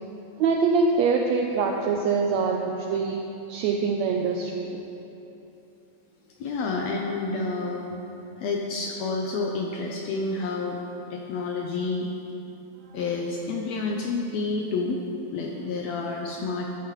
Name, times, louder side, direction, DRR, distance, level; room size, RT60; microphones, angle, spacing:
voice 1, 0.4-4.8, right 4 dB, 85° right, 2 dB, 1.5 m, -24 dB
voice 2, 6.4-7.8 8.4-10.8 11.1-12.1 12.9-15.0 15.3-16.8, left 3 dB, 75° left, 0 dB, 1.6 m, -29 dB
13.0 x 10.5 x 3.1 m, 2.9 s
omnidirectional pair, 3.6 m